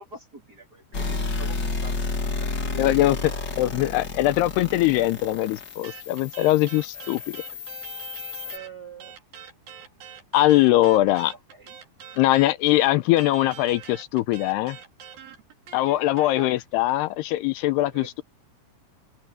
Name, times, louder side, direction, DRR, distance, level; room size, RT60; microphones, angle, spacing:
voice 1, 0.0-3.4 3.7-3.8 4.2-4.3 6.9-7.6 8.4-9.2 11.5-11.7 16.1-16.5 17.9-18.2, right 2 dB, 30° right, 2.6 m, -45 dB
sound 1, 0.9-8.6, left 3 dB, 30° left, 2.5 m, -31 dB
voice 2, 2.8-3.3 3.6-7.4 10.3-11.3 12.2-14.8 15.7-18.2, left 16 dB, 80° left, 2.8 m, -21 dB
sound 2, 5.8-8.7 9.0-16.3, right 8 dB, 60° right, 4.6 m, -44 dB
open air
omnidirectional pair, 4.7 m